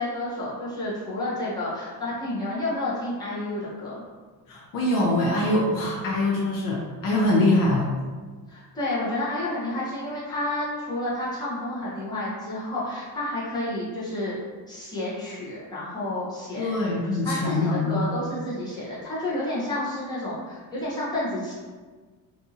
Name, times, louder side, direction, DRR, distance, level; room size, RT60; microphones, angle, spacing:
voice 1, 0.0-4.0 8.5-14.4 14.7-16.9 17.2-21.5, left 1 dB, 10° left, -9 dB, 0.8 m, -30 dB
voice 2, 4.5-7.9 16.6-18.0, left 1 dB, 55° left, -3 dB, 0.5 m, -23 dB
2.6 x 2.4 x 2.7 m, 1.4 s
cardioid pair, 160°, 40 cm